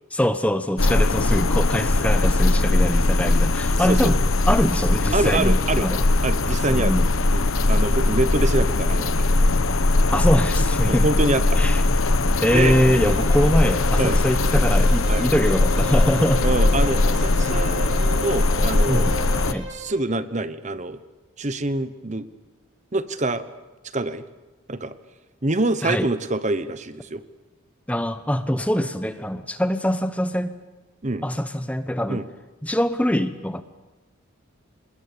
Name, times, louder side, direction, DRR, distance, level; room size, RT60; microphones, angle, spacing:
voice 1, 0.1-4.2 4.5-6.1 6.7-7.1 10.1-11.0 11.6-11.8 12.4-16.4 18.9-19.2 19.5-19.7 25.8-26.1 27.9-30.5 31.2-32.2 32.6-33.6, equal, 5° left, 10 dB, 0.9 m, -23 dB
sound 1, 0.8-19.5, left 2 dB, 75° left, 1.0 m, -20 dB
voice 2, 5.1-5.9 6.2-7.0 7.3-9.3 10.9-11.6 12.5-12.7 14.0-14.2 15.1-15.2 16.4-19.1 19.7-21.0 21.4-22.3 22.9-23.4 23.9-24.2 24.7-24.9 25.4-27.2 31.0-31.2 32.1-32.3, right 2 dB, 35° right, 12 dB, 1.0 m, -25 dB
Bowed string instrument, 12.3-20.0, right 1 dB, 55° right, 5.6 m, -36 dB
27.0 x 20.5 x 8.7 m, 1.2 s
head